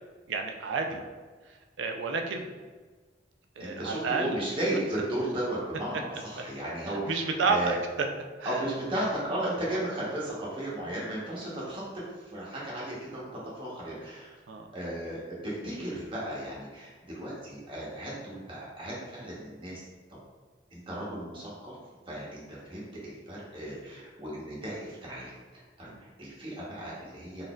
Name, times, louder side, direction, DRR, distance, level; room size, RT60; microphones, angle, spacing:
voice 1, 0.3-1.0 1.8-2.5 3.6-4.5 6.9-8.1 8.4-8.6 9.7-9.8 14.5-14.7 25.9-26.0, right 4 dB, 85° right, 4 dB, 0.4 m, -30 dB
voice 2, 3.6-7.2 7.5-7.8 8.5-11.8 12.3-13.3 13.6-14.3 14.7-19.8 20.7-21.7 22.1-22.4 22.7-25.3 25.8-25.9 26.2-27.5, right 1 dB, 30° right, -6 dB, 0.9 m, -35 dB
4.0 x 2.6 x 2.3 m, 1.4 s
head